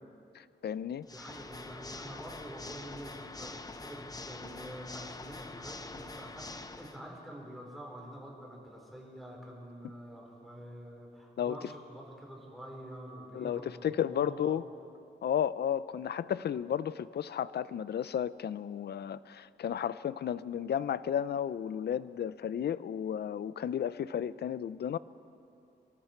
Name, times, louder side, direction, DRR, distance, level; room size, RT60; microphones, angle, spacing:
voice 1, 0.3-1.1 11.4-11.6 13.3-14.6 15.2-25.0, left 9 dB, 65° left, 16 dB, 0.5 m, -33 dB
Water / Mechanisms, 1.0-7.0, left 3 dB, 20° left, 0.7 m, -45 dB
voice 2, 1.1-14.6, equal, ahead, -2 dB, 4.0 m, -47 dB
25.0 x 23.5 x 4.5 m, 2.7 s
wide cardioid pair, 170°, 18 cm